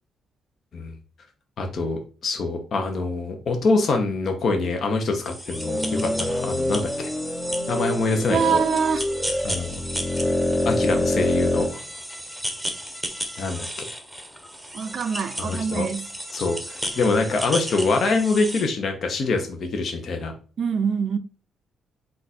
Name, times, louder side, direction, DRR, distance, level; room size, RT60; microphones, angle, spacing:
voice 1, 1.6-7.1 7.7-8.6 9.4-9.8 10.6-11.8 13.4-13.9 15.4-15.9 16.3-20.3, left 3 dB, 55° left, 0.9 m, -25 dB
sound 1, 5.2-18.7, equal, ahead, 0.9 m, -34 dB
sound 2, 5.5-11.7, left 1 dB, 25° left, 0.8 m, -26 dB
voice 2, 8.3-9.0 14.7-16.1 20.6-21.2, right 6 dB, 55° right, 0.4 m, -24 dB
3.9 x 2.5 x 4.2 m
cardioid pair, 90°, 0 cm